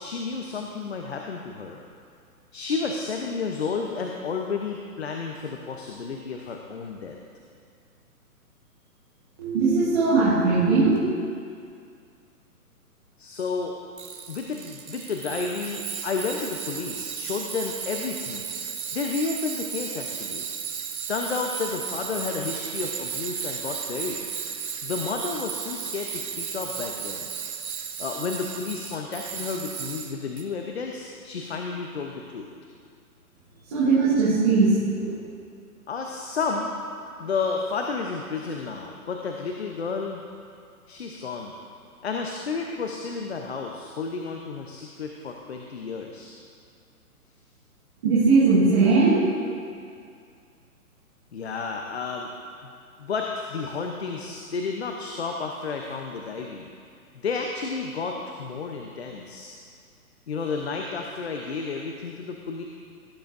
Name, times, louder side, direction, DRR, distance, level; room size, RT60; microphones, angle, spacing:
voice 1, 0.0-1.8 2.5-7.2 13.2-13.8 14.3-20.5 21.1-24.2 24.8-27.3 28.0-32.5 35.9-36.8 37.2-40.2 40.9-41.5 42.0-46.3 51.3-52.3 53.0-56.7 57.2-59.5 60.3-62.6, left 4 dB, 45° left, 2 dB, 0.7 m, -31 dB
voice 2, 9.4-10.9 33.6-35.1 48.0-49.3, right 3 dB, 15° right, -10 dB, 1.2 m, -19 dB
Tools, 14.0-30.4, right 7 dB, 70° right, 1.3 m, -34 dB
17.0 x 9.5 x 2.6 m, 2.3 s
hypercardioid pair, 175°, 45 cm